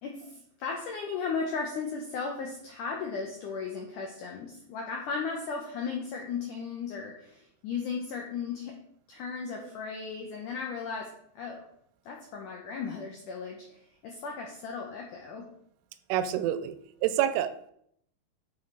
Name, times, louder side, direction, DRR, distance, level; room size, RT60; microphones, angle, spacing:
voice 1, 0.0-8.8 9.1-11.7 12.1-15.5, left 5 dB, 85° left, 1 dB, 1.8 m, -36 dB
voice 2, 16.1-16.7 17.0-17.7, right 11 dB, 85° right, 11 dB, 2.7 m, -27 dB
7.3 x 6.4 x 3.8 m, 0.70 s
omnidirectional pair, 4.8 m